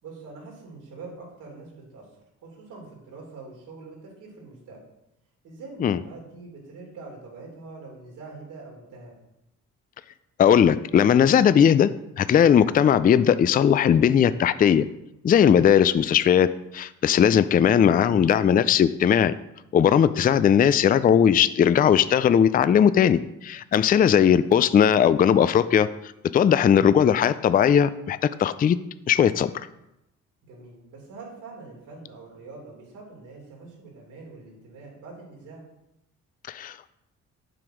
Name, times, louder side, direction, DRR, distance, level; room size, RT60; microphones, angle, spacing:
voice 1, 0.0-4.8 5.4-9.1 30.5-35.6, right 3 dB, 85° right, -1 dB, 3.2 m, -44 dB
voice 2, 10.4-11.9 12.2-14.9 15.2-19.3 19.7-25.9 26.3-28.8 29.1-29.5 36.5-36.7, left 8 dB, 30° left, 14 dB, 0.4 m, -18 dB
7.6 x 6.1 x 5.0 m, 0.87 s
cardioid pair, 90°, 30 cm